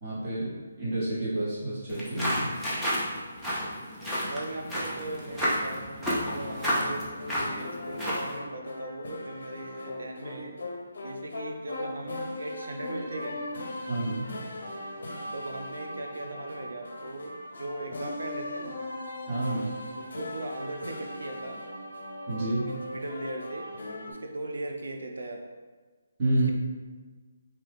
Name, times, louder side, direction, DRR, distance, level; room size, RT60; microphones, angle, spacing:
voice 1, 0.0-2.5 13.9-14.4 19.3-19.8 22.3-22.8 26.2-26.5, right 1 dB, 25° right, -10 dB, 1.2 m, -29 dB
sound 1, 1.9-8.4, equal, ahead, 0.5 m, -31 dB
voice 2, 4.3-10.6 11.0-13.4 15.3-18.7 20.0-21.6 22.6-23.7 24.0-25.4 26.2-26.5, right 2 dB, 85° right, 3 dB, 0.5 m, -38 dB
sound 2, 6.2-24.1, left 1 dB, 65° left, 0.5 m, -39 dB
2.9 x 2.4 x 3.4 m, 1.4 s
hypercardioid pair, 170°, 0 cm